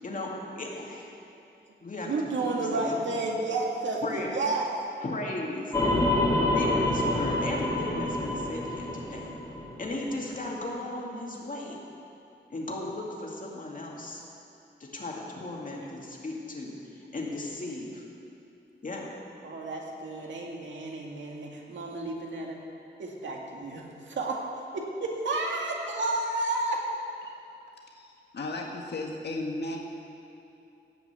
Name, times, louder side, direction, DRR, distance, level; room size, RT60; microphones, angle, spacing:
voice 1, 0.0-1.1 1.8-2.1 2.4-3.2 4.0-4.4 5.0-5.7 6.5-9.3 9.8-11.8 12.5-14.2 14.8-18.1 18.8-19.1, left 2 dB, 45° left, -2 dB, 2.2 m, -36 dB
voice 2, 2.0-4.7 19.4-22.6 23.0-24.4 24.7-26.8, right 2 dB, 85° right, -1 dB, 2.0 m, -31 dB
sound 1, 5.7-10.1, left 1 dB, 20° left, 2.1 m, -27 dB
voice 3, 27.9-29.8, left 2 dB, 65° left, 0 dB, 1.6 m, -35 dB
17.0 x 5.9 x 8.2 m, 2.7 s
wide cardioid pair, 115°, 19 cm